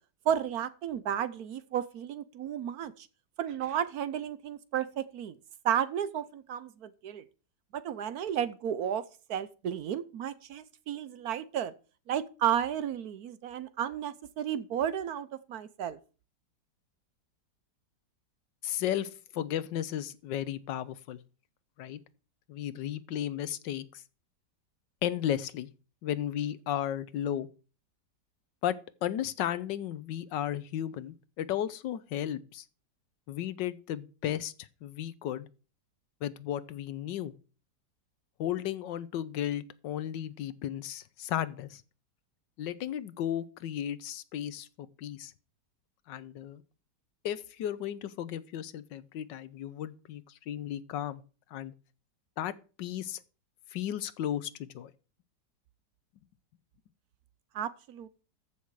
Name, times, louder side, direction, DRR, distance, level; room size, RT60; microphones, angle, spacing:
voice 1, 0.2-3.1 3.4-5.4 5.6-7.2 7.7-9.0 9.3-11.7 12.1-16.0 57.5-58.1, right 9 dB, 65° right, 1.1 m, -33 dB
voice 2, 18.6-21.2 21.8-22.0 22.5-24.0 25.0-25.7 26.0-27.5 28.6-28.7 29.0-32.6 33.3-35.5 36.2-37.3 38.4-41.8 42.6-45.3 46.1-46.6 47.2-51.2 51.5-51.7 52.4-52.5 52.8-53.2 53.7-54.9, left 11 dB, 85° left, 1.4 m, -34 dB
14.0 x 6.2 x 4.7 m
omnidirectional pair, 1.9 m